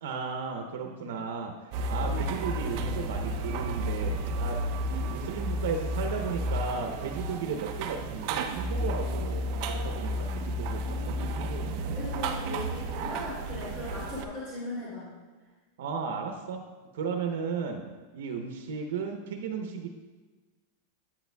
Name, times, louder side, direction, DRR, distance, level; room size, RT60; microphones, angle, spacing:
voice 1, 0.0-1.5 1.9-4.6 5.1-12.0 15.8-16.6 16.9-17.8 18.1-19.9, right 5 dB, 70° right, 4 dB, 0.8 m, -35 dB
voice 2, 0.8-1.1 2.1-2.2 10.1-11.2 11.8-15.1, left 2 dB, 25° left, -9 dB, 2.7 m, -39 dB
sound 1, 1.7-14.2, right 1 dB, 40° right, 0.6 m, -32 dB
10.5 x 8.5 x 2.3 m, 1.3 s
supercardioid pair, 175°, 0 cm